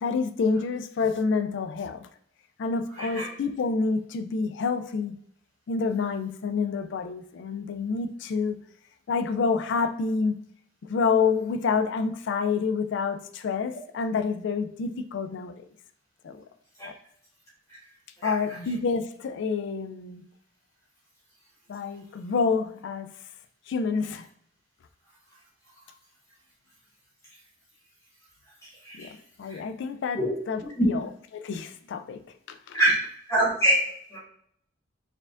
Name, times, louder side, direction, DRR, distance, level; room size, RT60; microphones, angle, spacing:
voice 1, 0.0-2.1 2.6-5.2 5.7-8.6 9.1-10.4 10.9-15.5 16.2-16.4 16.8-16.9 18.2-20.2 21.7-23.1 23.7-24.2 29.0-29.1 29.4-30.2 30.5-31.1 31.3-32.2 32.7-32.8, left 5 dB, 65° left, 9 dB, 0.3 m, -28 dB
voice 2, 3.0-3.3 16.8-16.9 18.2-18.3 28.8-29.1 29.5-29.6 30.1-30.3 30.8-30.9 32.7-33.0 33.3-33.8 34.1-34.2, right 1 dB, 15° left, -7 dB, 1.5 m, -24 dB
4.4 x 3.4 x 2.5 m, 0.67 s
head